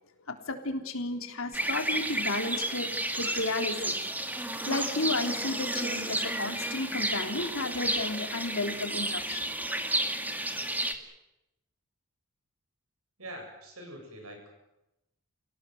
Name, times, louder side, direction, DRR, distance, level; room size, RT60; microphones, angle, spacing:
voice 1, 0.2-9.4, left 2 dB, 65° left, 5 dB, 3.6 m, -33 dB
sound 1, 1.5-10.9, right 1 dB, 10° right, 2.2 m, -32 dB
voice 2, 13.2-14.5, right 1 dB, 80° right, 3 dB, 7.8 m, -44 dB
29.5 x 18.0 x 8.0 m, 0.91 s
head